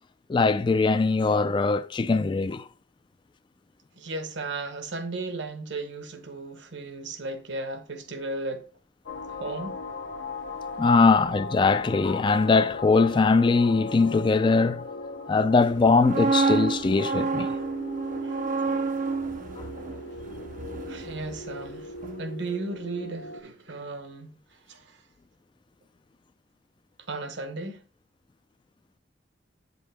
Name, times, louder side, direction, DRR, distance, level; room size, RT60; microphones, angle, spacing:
voice 1, 0.3-2.6 10.8-14.8 15.3-17.5, left 4 dB, 25° left, 0.3 m, -21 dB
voice 2, 4.0-8.7 9.3-9.8 18.2-18.7 20.9-21.9 22.2-24.4 24.7-25.0 27.1-27.8, right 2 dB, 70° right, 1.1 m, -35 dB
sound 1, 9.1-23.4, left 3 dB, 80° left, 0.9 m, -38 dB
sound 2, 15.8-21.7 22.0-22.3, right 4 dB, 45° right, 0.6 m, -29 dB
8.6 x 5.4 x 3.4 m
head